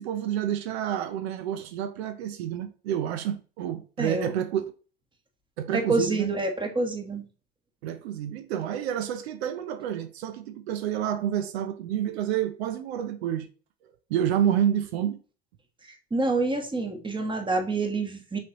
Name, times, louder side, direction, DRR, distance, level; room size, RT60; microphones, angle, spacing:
voice 1, 0.0-4.6 5.6-6.3 7.8-13.5 14.1-15.2, right 10 dB, 75° right, 0.6 m, -29 dB
voice 2, 4.0-4.3 5.7-7.3 15.8-18.4, right 3 dB, 15° right, 1.3 m, -27 dB
5.6 x 3.2 x 2.9 m
hypercardioid pair, 80°, 32 cm